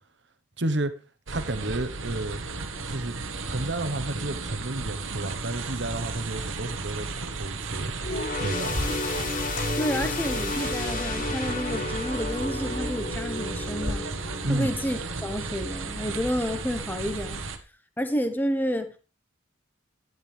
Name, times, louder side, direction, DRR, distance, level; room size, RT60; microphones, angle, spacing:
voice 1, 0.6-0.9 1.3-2.4 2.9-3.2 3.5-7.9 8.4-8.9 14.4-14.7, right 2 dB, 65° right, 1.2 m, -31 dB
sound 1, 1.3-17.6, right 3 dB, 90° right, 1.4 m, -34 dB
sound 2, 8.0-15.7 16.1-16.3 17.2-17.3, left 3 dB, 45° left, 0.8 m, -33 dB
sound 3, 8.7-13.9, left 1 dB, 75° left, 6.0 m, -40 dB
voice 2, 9.8-14.1 14.5-17.4 18.0-18.9, equal, 10° left, 1.1 m, -30 dB
11.0 x 11.0 x 3.5 m
head